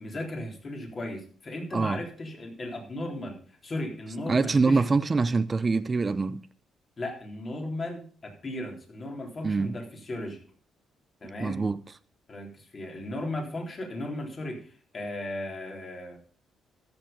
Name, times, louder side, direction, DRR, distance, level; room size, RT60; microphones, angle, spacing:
voice 1, 0.0-3.4 3.6-4.8 7.0-10.4 11.2-11.6 12.3-16.2, left 1 dB, 35° left, 3.8 m, -36 dB
voice 2, 4.3-6.5 9.4-9.8 11.4-11.8, right 4 dB, 30° right, 0.6 m, -25 dB
14.0 x 6.9 x 5.3 m
cardioid pair, 90°, 0 cm